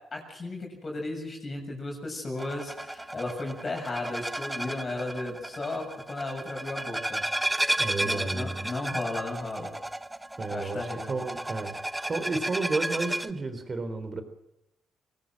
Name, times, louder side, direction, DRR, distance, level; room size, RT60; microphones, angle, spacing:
voice 1, 0.1-9.7 10.5-11.1, left 2 dB, 35° left, 2 dB, 7.4 m, -35 dB
sound 1, 2.4-13.3, right 1 dB, 10° right, 1.0 m, -33 dB
voice 2, 7.8-8.7 10.4-11.8 12.0-14.2, right 3 dB, 35° right, 9 dB, 3.8 m, -32 dB
24.0 x 18.5 x 7.7 m, 0.84 s
cardioid pair, 90°, 0 cm